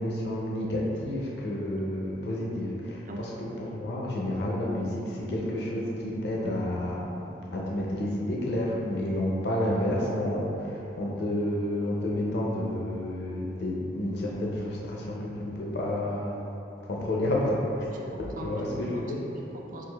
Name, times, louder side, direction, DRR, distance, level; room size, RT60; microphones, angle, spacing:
voice 1, 0.0-7.1 7.5-16.4 16.9-17.9 18.4-19.2, left 1 dB, 60° left, -4 dB, 0.4 m, -30 dB
voice 2, 17.9-19.0 19.3-19.8, right 1 dB, 45° right, 0 dB, 0.4 m, -42 dB
6.0 x 2.4 x 2.3 m, 2.9 s
head